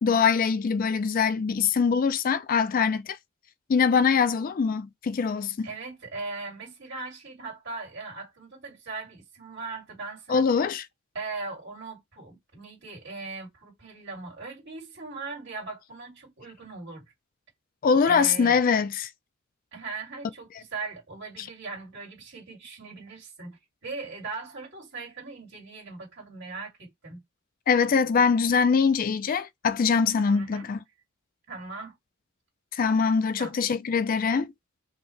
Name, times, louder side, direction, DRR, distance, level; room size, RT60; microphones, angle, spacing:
voice 1, 0.0-3.2 3.7-5.7 10.3-10.8 17.8-19.1 21.4-21.5 27.7-30.8 32.7-34.5, left 5 dB, 45° left, 0.4 m, -23 dB
voice 2, 5.6-10.4 11.1-17.0 18.0-18.6 19.7-27.2 30.3-30.7 31.5-31.9 33.4-33.5, right 3 dB, 60° right, 2.7 m, -39 dB
4.4 x 2.8 x 3.2 m
head